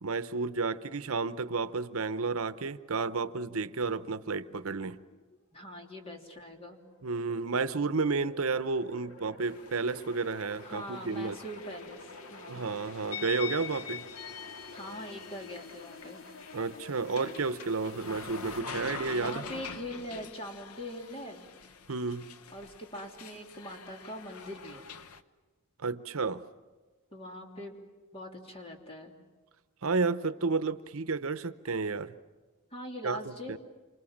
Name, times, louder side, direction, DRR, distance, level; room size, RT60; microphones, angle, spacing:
voice 1, 0.0-5.0 7.0-11.4 12.5-14.0 16.5-19.4 21.9-22.3 25.8-26.4 29.8-32.1 33.0-33.2 33.5-33.6, right 4 dB, 75° right, 0.8 m, -31 dB
sound 1, 3.8-18.6, left 2 dB, 65° left, 2.0 m, -51 dB
voice 2, 5.5-6.8 10.6-12.7 14.7-16.2 19.2-21.5 22.5-24.8 27.1-27.8 28.1-29.1 32.7-33.6, equal, 25° left, 3.1 m, -42 dB
sound 2, 9.4-25.2, left 6 dB, 90° left, 1.0 m, -45 dB
28.0 x 26.0 x 7.3 m
head